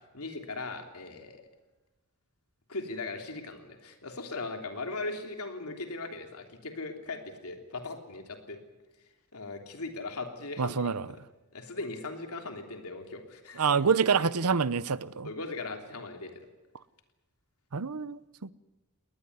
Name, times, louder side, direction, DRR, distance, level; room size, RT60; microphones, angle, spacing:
voice 1, 0.1-1.4 2.7-8.6 9.3-11.0 11.5-14.3 15.2-16.3, left 3 dB, 75° left, 3.3 m, -39 dB
voice 2, 10.6-11.1 13.6-15.3 17.7-18.5, right 6 dB, 80° right, 0.8 m, -27 dB
21.5 x 18.5 x 9.6 m
head